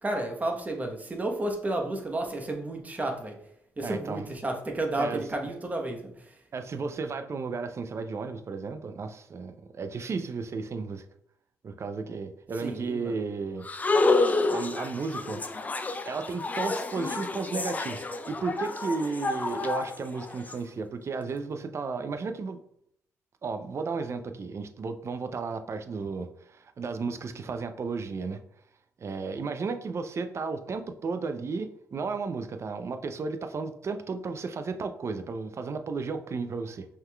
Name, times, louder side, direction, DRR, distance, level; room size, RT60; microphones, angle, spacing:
voice 1, 0.0-3.4 3.8-6.2 12.6-13.2, right 2 dB, 25° right, 1.0 m, -32 dB
voice 2, 3.8-4.2 5.0-5.2 6.5-11.0 11.6-13.7 14.5-15.4 16.1-22.6 23.4-28.4 29.0-36.9, right 4 dB, 45° right, 0.5 m, -34 dB
sound 1, 13.6-20.5, left 3 dB, 25° left, 0.4 m, -29 dB
5.4 x 3.8 x 2.3 m
supercardioid pair, 65°, 6 cm